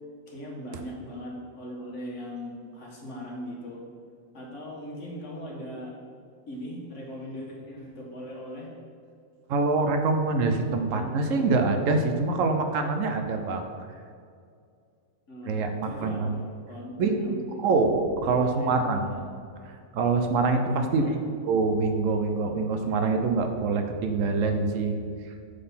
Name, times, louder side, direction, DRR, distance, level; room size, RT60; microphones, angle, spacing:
voice 1, 0.3-3.8 4.3-5.9 6.5-8.7 10.9-11.2 15.3-17.6 18.2-19.2 20.7-21.2, left 1 dB, 60° left, -2 dB, 1.5 m, -39 dB
voice 2, 9.5-13.6 15.5-16.3 17.0-17.3 17.6-19.2 19.9-21.0 21.5-25.0, right 3 dB, 75° right, 6 dB, 1.0 m, -25 dB
6.5 x 3.9 x 5.5 m, 2.3 s
omnidirectional pair, 1.4 m